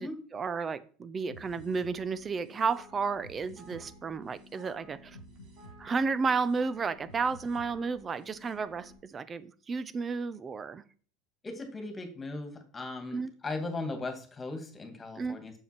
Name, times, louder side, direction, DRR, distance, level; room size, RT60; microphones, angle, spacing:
voice 1, 0.0-5.2 5.8-10.8 13.1-13.3 15.2-15.4, right 5 dB, 30° right, 15 dB, 0.8 m, -32 dB
sound 1, 1.3-9.0, equal, 60° right, 3.7 m, -52 dB
voice 2, 11.4-15.5, left 2 dB, 25° left, 6 dB, 2.5 m, -38 dB
7.1 x 7.0 x 6.1 m, 0.43 s
hypercardioid pair, 85°, 0 cm